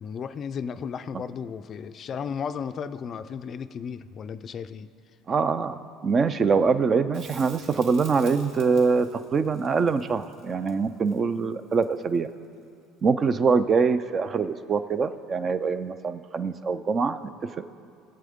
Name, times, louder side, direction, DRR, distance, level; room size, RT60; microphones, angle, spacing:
voice 1, 0.0-4.9, left 6 dB, 40° left, 12 dB, 0.4 m, -34 dB
voice 2, 5.3-12.3 13.0-17.2 17.6-17.7, right 5 dB, 30° right, 12 dB, 0.4 m, -24 dB
Crackle, 7.1-12.3 15.0-15.1, right 4 dB, 70° right, 1.7 m, -49 dB
18.0 x 7.6 x 3.6 m, 2.3 s
supercardioid pair, 115°, 0 cm